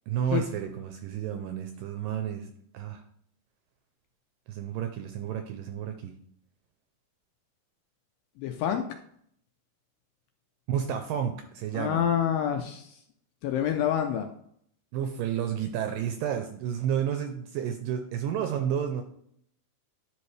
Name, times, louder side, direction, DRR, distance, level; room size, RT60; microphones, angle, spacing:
voice 1, 0.1-3.0 4.5-6.2 10.7-12.1 14.9-19.0, right 9 dB, 85° right, 7 dB, 2.0 m, -31 dB
voice 2, 8.4-8.9 11.7-13.0 13.4-14.3, left 9 dB, 80° left, 5 dB, 2.0 m, -27 dB
10.5 x 5.5 x 3.2 m, 0.67 s
omnidirectional pair, 4.5 m